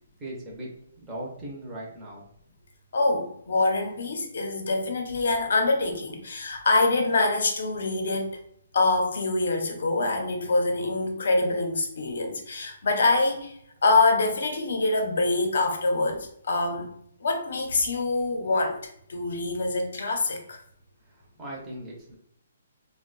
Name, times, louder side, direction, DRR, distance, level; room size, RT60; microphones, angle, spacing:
voice 1, 0.2-0.7 1.0-2.3 21.0-22.1, right 1 dB, 5° right, -4 dB, 0.6 m, -39 dB
voice 2, 2.9-8.4 8.7-13.6 13.8-16.9 17.2-20.6, left 3 dB, 55° left, 4 dB, 0.6 m, -25 dB
2.7 x 2.1 x 3.8 m, 0.70 s
hypercardioid pair, 180°, 0 cm